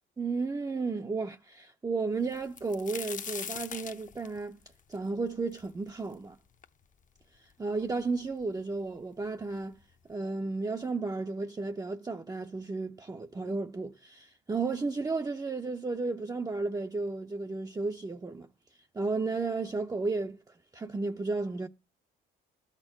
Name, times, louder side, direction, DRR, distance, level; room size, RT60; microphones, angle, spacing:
voice 1, 0.2-4.6 4.9-6.4 7.6-9.8 10.1-18.5 18.9-21.7, right 3 dB, 20° right, 0.6 m, -33 dB
sound 1, 2.3-6.1 6.6-6.7 7.5-7.6 7.9-8.5 9.4-9.5 9.9-10.1, left 7 dB, 40° left, 0.8 m, -41 dB
12.5 x 4.4 x 5.9 m
cardioid pair, 90°, 20 cm